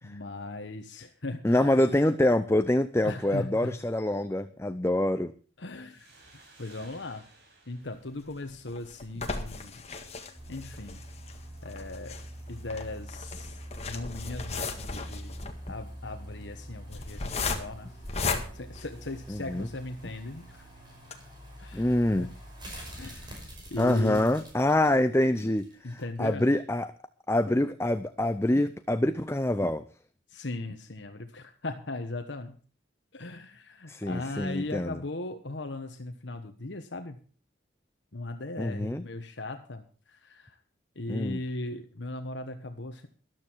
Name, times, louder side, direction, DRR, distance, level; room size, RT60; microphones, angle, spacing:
voice 1, 0.0-1.8 3.0-3.7 5.6-6.1 6.6-7.3 7.7-9.8 10.5-11.0 11.6-12.1 12.5-13.6 13.9-15.3 15.7-17.9 18.5-20.7 21.6-22.3 23.0-24.2 24.9-25.0 25.8-26.5 30.3-32.6 33.1-37.2 38.1-40.6 40.9-43.1, left 2 dB, 70° left, 6 dB, 1.2 m, -38 dB
voice 2, 1.4-5.3 19.3-19.7 21.7-22.3 23.8-26.9 27.3-29.8 33.9-34.9 38.6-39.0 41.1-41.4, left 1 dB, 15° left, 10 dB, 0.5 m, -26 dB
sound 1, 5.9-9.3, right 2 dB, 60° right, 6.2 m, -57 dB
sound 2, 8.2-19.6 20.1-20.2 20.5-20.6 21.0-21.1, left 4 dB, 35° left, 1.8 m, -36 dB
sound 3, 10.3-26.0 26.4-26.5, right 1 dB, 25° right, 5.6 m, -45 dB
13.5 x 12.0 x 4.6 m, 0.40 s
head